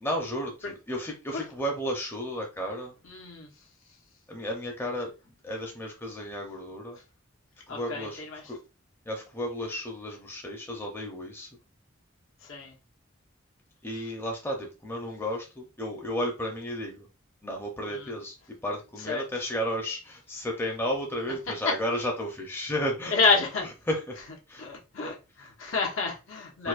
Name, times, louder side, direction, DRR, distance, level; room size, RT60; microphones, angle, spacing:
voice 1, 0.0-2.9 4.3-5.1 5.4-7.0 7.7-8.6 9.0-11.5 13.8-17.1 17.4-18.4 18.6-23.1 23.9-24.2 24.5-24.7 26.6-26.7, equal, 10° left, 0 dB, 0.6 m, -33 dB
voice 2, 3.0-3.5 7.7-8.4 12.5-12.7 17.9-18.1 19.1-19.2 23.1-23.7 24.6-26.7, left 4 dB, 80° left, -1 dB, 1.1 m, -29 dB
4.5 x 2.1 x 2.4 m, 0.30 s
head